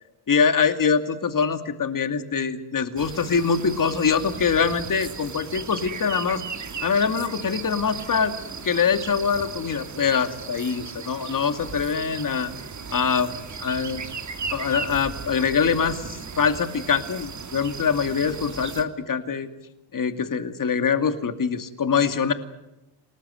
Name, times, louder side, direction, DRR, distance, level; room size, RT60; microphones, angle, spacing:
voice 1, 0.3-6.4 6.8-8.3 8.6-12.5 12.9-13.3 13.6-14.0 14.5-16.1 16.4-19.5 19.9-22.3, left 6 dB, 40° left, 9 dB, 2.5 m, -23 dB
sound 1, 3.0-18.8, right 5 dB, 35° right, 2.6 m, -36 dB
29.0 x 19.5 x 7.9 m, 0.92 s
cardioid pair, 100°, 50 cm